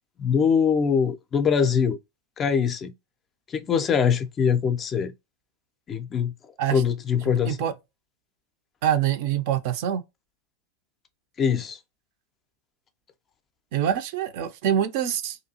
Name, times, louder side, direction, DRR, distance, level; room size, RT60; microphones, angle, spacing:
voice 1, 0.2-2.0 2.4-2.9 3.5-5.1 5.9-6.3 6.7-7.6 11.4-11.8, left 7 dB, 25° left, 0.3 m, -23 dB
voice 2, 8.8-10.0 13.7-15.4, right 10 dB, 45° right, 0.4 m, -25 dB
2.6 x 2.3 x 2.7 m
figure-of-eight pair, 90°, 0 cm